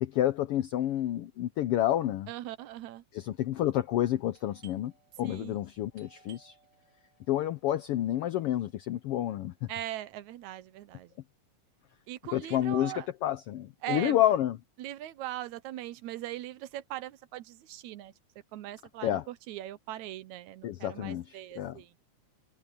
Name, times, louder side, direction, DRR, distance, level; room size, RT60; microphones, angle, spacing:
voice 1, 0.0-2.3 3.1-4.9 5.2-6.6 7.3-9.7 12.3-14.6 19.0-19.2 20.6-21.8, left 12 dB, 85° left, 1.3 m, -29 dB
voice 2, 2.3-3.0 5.2-5.6 9.7-11.1 12.1-13.1 13.8-14.2 14.8-18.1 18.5-21.9, right 14 dB, 75° right, 2.1 m, -40 dB
Doorbell, 4.3-9.8, right 6 dB, 45° right, 6.1 m, -62 dB
omnidirectional pair, 3.4 m